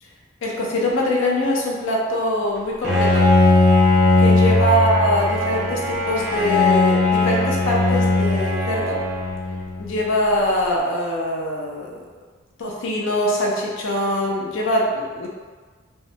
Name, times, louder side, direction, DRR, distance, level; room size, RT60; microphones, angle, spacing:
voice 1, 0.4-3.2 4.2-9.0 9.8-12.0 12.6-15.3, left 1 dB, 70° left, -2 dB, 0.5 m, -23 dB
Bowed string instrument, 2.8-9.9, left 2 dB, ahead, 0.5 m, -18 dB
2.3 x 2.0 x 2.7 m, 1.5 s
head